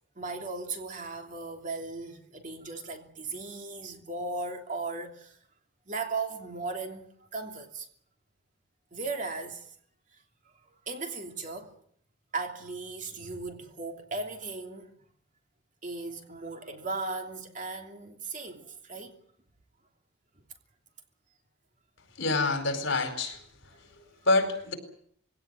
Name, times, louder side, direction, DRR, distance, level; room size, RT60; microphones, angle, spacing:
voice 1, 0.1-5.4 5.9-7.9 8.9-9.7 10.9-11.7 12.3-14.9 15.8-19.2, right 3 dB, 40° right, 3.0 m, -37 dB
voice 2, 22.2-23.4 24.0-24.7, left 2 dB, 65° left, 4.6 m, -27 dB
22.0 x 17.5 x 9.5 m
head